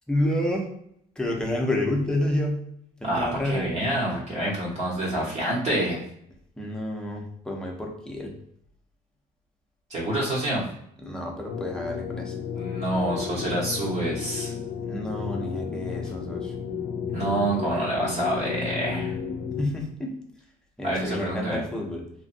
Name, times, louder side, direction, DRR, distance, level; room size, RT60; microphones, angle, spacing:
voice 1, 0.1-0.7 1.2-2.6 3.0-3.7 6.6-8.3 11.0-12.4 14.9-16.5 19.6-20.2 20.8-22.1, left 1 dB, 5° left, 0 dB, 0.7 m, -29 dB
voice 2, 3.0-6.0 9.9-10.6 12.5-14.5 17.1-19.2 20.8-21.6, right 1 dB, 40° right, -6 dB, 1.1 m, -27 dB
sound 1, 11.5-19.6, left 6 dB, 85° left, 0.5 m, -33 dB
3.0 x 2.5 x 2.5 m, 0.72 s
cardioid pair, 110°, 17 cm